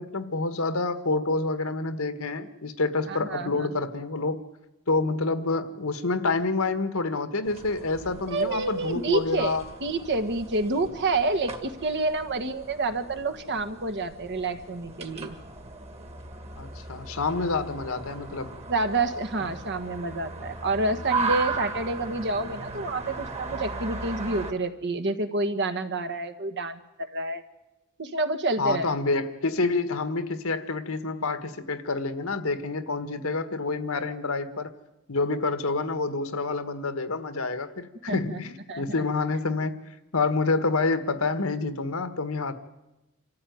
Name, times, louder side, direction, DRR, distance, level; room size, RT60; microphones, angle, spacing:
voice 1, 0.0-4.4 4.9-9.6 16.6-18.5 28.6-34.7 35.1-39.8 40.1-42.5, left 3 dB, 75° left, 11 dB, 1.6 m, -28 dB
voice 2, 3.1-3.7 8.3-15.4 18.7-27.4 28.0-28.9 38.1-38.4 38.7-38.8, right 2 dB, 55° right, 8 dB, 1.6 m, -28 dB
sound 1, 7.5-24.5, right 4 dB, 30° right, 2.1 m, -37 dB
26.5 x 14.5 x 9.5 m, 1.0 s
head